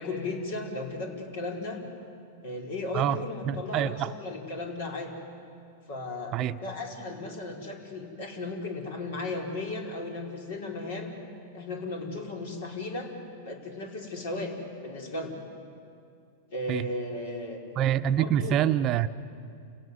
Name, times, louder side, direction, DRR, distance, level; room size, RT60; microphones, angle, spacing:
voice 1, 0.0-1.8 2.4-5.2 5.9-6.3 6.6-11.2 11.5-13.1 13.4-14.5 14.8-15.4 16.5-17.6 18.2-18.6, left 2 dB, 70° left, 2 dB, 4.6 m, -35 dB
voice 2, 3.4-4.1 6.3-6.6 16.7-16.9 17.8-19.1, right 10 dB, 40° right, 11 dB, 0.8 m, -26 dB
28.5 x 17.0 x 9.7 m, 2.4 s
hypercardioid pair, 110°, 0 cm